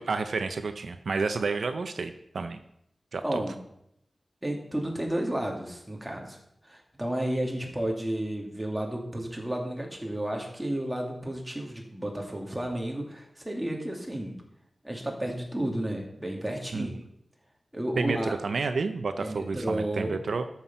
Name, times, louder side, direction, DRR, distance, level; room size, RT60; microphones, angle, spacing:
voice 1, 0.0-2.6 3.1-3.4 16.7-16.9 17.9-18.2 18.4-20.4, right 4 dB, 85° right, 8 dB, 0.7 m, -30 dB
voice 2, 3.2-3.6 4.4-6.4 6.6-14.3 14.8-16.9 17.7-18.3 19.2-20.1, right 1 dB, 10° right, 0 dB, 2.5 m, -32 dB
13.5 x 6.0 x 5.6 m, 0.75 s
wide cardioid pair, 90°, 0 cm